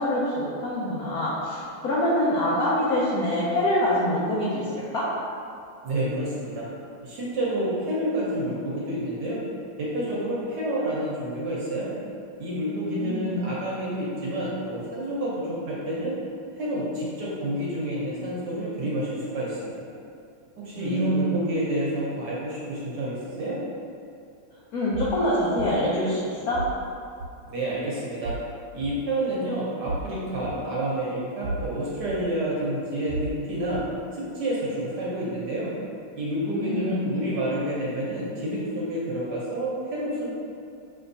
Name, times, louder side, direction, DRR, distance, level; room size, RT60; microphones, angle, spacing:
voice 1, 0.0-5.1 12.9-13.4 20.7-21.5 24.7-26.6 36.5-37.1, left 1 dB, 75° left, -7 dB, 0.8 m, -25 dB
voice 2, 5.8-6.7 7.0-9.4 9.8-11.9 12.4-16.2 16.6-19.9 20.6-23.6 27.5-28.3 28.7-33.8 34.1-35.7 36.2-40.3, right 1 dB, 60° right, -6 dB, 1.2 m, -29 dB
sound 1, 24.9-25.2 25.6-25.7 26.5-26.8 27.2-27.3 28.2-28.4 28.8-28.9 29.8-30.1 30.4-30.5 31.4-31.7 32.1-32.2 33.1-33.3 33.7-33.8, right 2 dB, 85° right, 1.7 m, -32 dB
5.7 x 3.4 x 2.7 m, 2.5 s
omnidirectional pair, 2.4 m